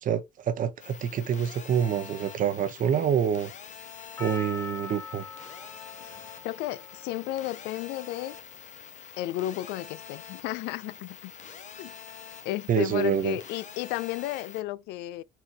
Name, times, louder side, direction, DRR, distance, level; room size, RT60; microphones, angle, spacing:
voice 1, 0.0-3.5 4.2-5.2 12.7-13.4, right 8 dB, 55° right, 0.9 m, -27 dB
sound 1, 0.8-14.6, left 7 dB, 45° left, 1.0 m, -46 dB
Percussion, 4.2-8.5 9.2-9.3, left 5 dB, 15° left, 0.5 m, -43 dB
voice 2, 6.4-8.4 9.2-11.3 11.8-11.9 12.4-15.2, left 15 dB, 90° left, 0.4 m, -33 dB
4.4 x 3.5 x 2.8 m
cardioid pair, 110°, 17 cm